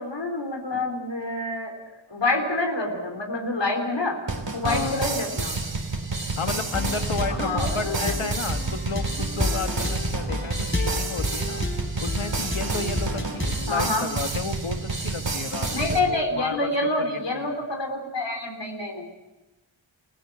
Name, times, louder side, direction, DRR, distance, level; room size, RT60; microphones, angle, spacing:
voice 1, 0.0-1.7 2.1-4.2 4.5-5.6 7.3-8.1 13.7-14.1 15.7-19.1, left 2 dB, 60° left, 2 dB, 3.9 m, -27 dB
sound 1, 4.3-16.0, right 3 dB, 65° right, 3.5 m, -29 dB
voice 2, 4.6-5.0 6.3-11.6 12.0-16.7 17.0-17.5, left 4 dB, 75° left, 7 dB, 1.7 m, -32 dB
sound 2, 6.7-13.7, left 2 dB, 25° left, 4.2 m, -31 dB
29.0 x 16.5 x 7.7 m, 1.1 s
wide cardioid pair, 70°, 48 cm